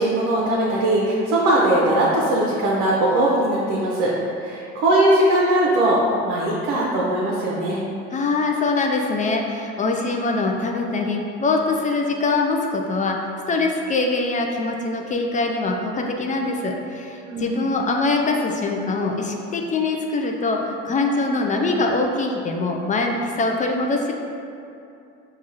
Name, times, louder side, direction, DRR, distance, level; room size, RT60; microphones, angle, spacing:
voice 1, 0.0-7.8 17.3-17.6, right 1 dB, 60° right, -5 dB, 0.7 m, -20 dB
voice 2, 8.1-13.2 13.5-24.1, left 3 dB, 25° left, 1 dB, 0.4 m, -23 dB
4.6 x 2.4 x 2.8 m, 2.6 s
supercardioid pair, 80°, 32 cm